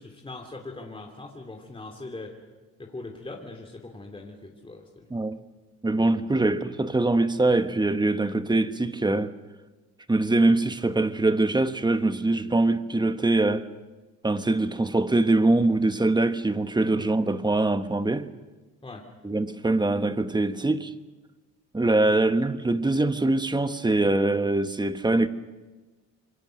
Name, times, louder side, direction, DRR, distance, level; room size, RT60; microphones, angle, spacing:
voice 1, 0.0-2.4 2.8-5.1 16.9-17.1 18.8-19.0, left 2 dB, 15° left, 3.0 m, -41 dB
voice 2, 5.8-9.3 10.1-13.7 14.2-18.3 19.2-20.9 21.7-25.3, right 2 dB, 15° right, 1.2 m, -23 dB
26.5 x 23.0 x 6.6 m
cardioid pair, 90°, 30 cm